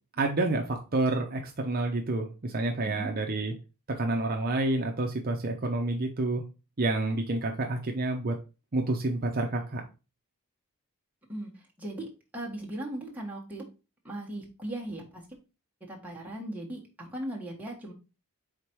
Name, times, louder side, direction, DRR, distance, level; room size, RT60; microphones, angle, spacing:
voice 1, 0.2-3.5 4.0-6.4 6.8-8.3 8.7-9.8, right 2 dB, 40° right, 2 dB, 0.7 m, -29 dB
voice 2, 11.8-12.1 12.3-13.7 14.0-15.2 15.9-17.9, right 1 dB, 5° right, -3 dB, 1.6 m, -38 dB
5.1 x 4.1 x 4.5 m, 0.30 s
head